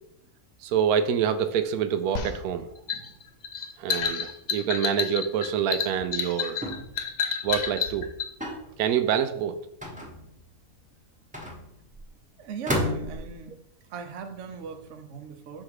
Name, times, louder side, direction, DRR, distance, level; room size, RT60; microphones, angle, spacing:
voice 1, 0.6-2.7 3.8-6.6 7.4-8.1 8.8-9.6, right 8 dB, 80° right, 10 dB, 1.1 m, -26 dB
sound 1, 2.1-8.3, left 6 dB, 65° left, 1.1 m, -30 dB
sound 2, 6.6-7.0 8.4-8.7 9.8-10.5 11.3-12.0 12.7-13.4, left 1 dB, 5° right, 1.0 m, -31 dB
voice 2, 12.4-13.6 13.9-15.6, right 6 dB, 60° right, 6 dB, 1.0 m, -38 dB
6.4 x 3.7 x 4.7 m, 0.75 s
omnidirectional pair, 1.6 m